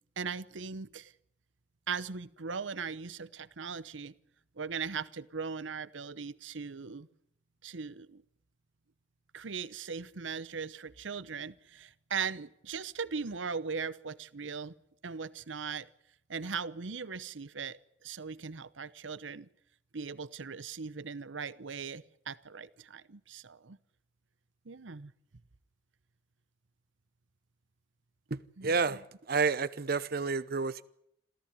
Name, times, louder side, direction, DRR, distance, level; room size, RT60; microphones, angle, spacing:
voice 1, 0.2-1.1 1.9-4.1 4.6-7.1 7.6-8.2 9.3-14.7 15.0-15.9 16.3-19.5 19.9-23.8 24.7-25.1 28.6-29.0, right 5 dB, 85° right, 0.9 m, -39 dB
voice 2, 28.3-29.0 29.3-30.8, right 4 dB, 55° right, 0.8 m, -30 dB
27.0 x 14.5 x 9.5 m
head